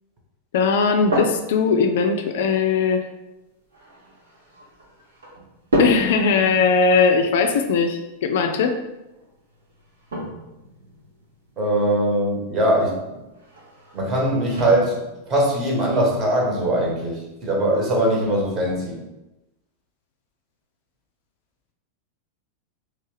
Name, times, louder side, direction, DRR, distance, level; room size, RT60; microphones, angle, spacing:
voice 1, 0.5-3.1 5.8-8.8, left 5 dB, 55° left, 6 dB, 0.3 m, -19 dB
sound 1, 0.7-18.7, equal, 65° right, 1.0 m, -33 dB
voice 2, 11.6-13.2 13.9-15.0 15.2-19.0, right 1 dB, 30° right, -2 dB, 1.2 m, -21 dB
3.3 x 3.2 x 3.2 m, 0.98 s
figure-of-eight pair, 90°, 0 cm